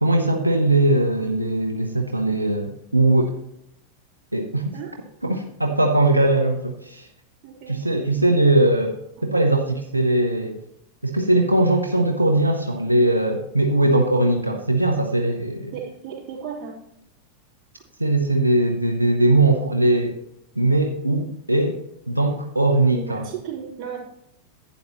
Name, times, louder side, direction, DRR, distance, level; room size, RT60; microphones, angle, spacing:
voice 1, 0.0-3.3 4.3-4.7 5.2-7.1 7.7-9.0 9.2-10.6 11.0-15.7 18.0-20.1 20.6-21.8 22.1-23.2, right 2 dB, 85° right, 4 dB, 0.7 m, -20 dB
voice 2, 7.4-7.7 9.2-9.3 15.7-16.8 22.9-24.0, right 7 dB, 35° right, -4 dB, 3.3 m, -34 dB
11.5 x 9.1 x 3.0 m, 0.76 s
figure-of-eight pair, 90°, 0 cm